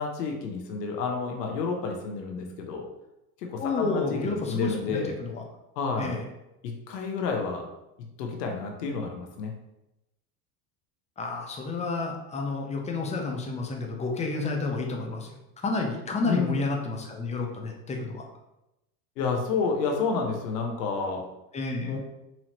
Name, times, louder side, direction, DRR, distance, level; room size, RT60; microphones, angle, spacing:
voice 1, 0.0-2.9 3.4-5.1 5.8-6.1 6.6-7.7 8.2-9.5 16.2-16.7 19.2-21.2 21.8-22.1, left 4 dB, 80° left, 2 dB, 0.9 m, -30 dB
voice 2, 3.6-5.4 6.0-6.2 11.2-15.3 15.6-18.2 21.5-22.0, left 3 dB, 15° left, 2 dB, 0.6 m, -30 dB
4.4 x 2.8 x 2.9 m, 0.91 s
hypercardioid pair, 105°, 48 cm